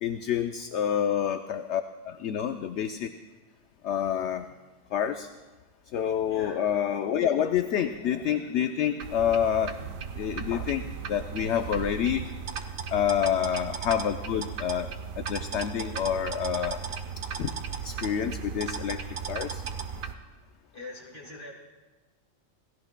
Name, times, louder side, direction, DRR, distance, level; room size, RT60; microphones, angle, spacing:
voice 1, 0.0-3.1 3.8-4.5 4.9-5.3 5.9-9.8 10.2-10.8 11.1-12.3 12.9-14.9 15.3-16.8 17.4-17.5 17.8-19.0 19.3-19.6, left 9 dB, 65° left, 7 dB, 0.8 m, -28 dB
voice 2, 6.3-6.6 20.7-21.5, left 2 dB, 40° left, -1 dB, 2.6 m, -43 dB
sound 1, 9.0-20.1, right 6 dB, 85° right, 1.3 m, -36 dB
28.5 x 16.5 x 2.2 m, 1.2 s
omnidirectional pair, 1.4 m